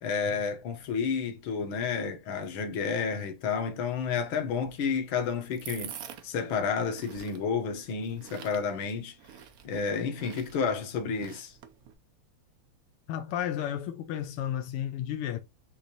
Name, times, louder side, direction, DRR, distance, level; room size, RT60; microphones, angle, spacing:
voice 1, 0.0-6.0 6.2-9.1 9.6-11.5, left 5 dB, 70° left, 1.8 m, -31 dB
sound 1, 4.5-11.9, right 9 dB, 80° right, 0.8 m, -48 dB
voice 2, 13.1-15.4, left 10 dB, 90° left, 1.6 m, -32 dB
6.7 x 2.6 x 2.8 m
omnidirectional pair, 2.4 m